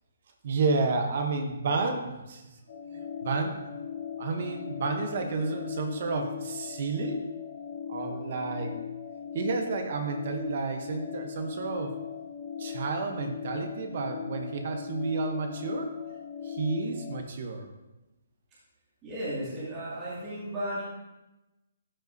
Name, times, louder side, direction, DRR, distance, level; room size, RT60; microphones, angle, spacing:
voice 1, 0.4-2.4 3.2-3.6 4.2-7.3 7.9-8.7 9.3-12.0 12.6-15.9 16.4-17.7, right 4 dB, 40° right, 5 dB, 0.8 m, -31 dB
sound 1, 2.7-17.2, left 8 dB, 40° left, 1.0 m, -39 dB
voice 2, 19.0-20.8, right 1 dB, 15° right, -10 dB, 2.1 m, -34 dB
12.5 x 5.3 x 2.6 m, 1.0 s
hypercardioid pair, 175°, 0 cm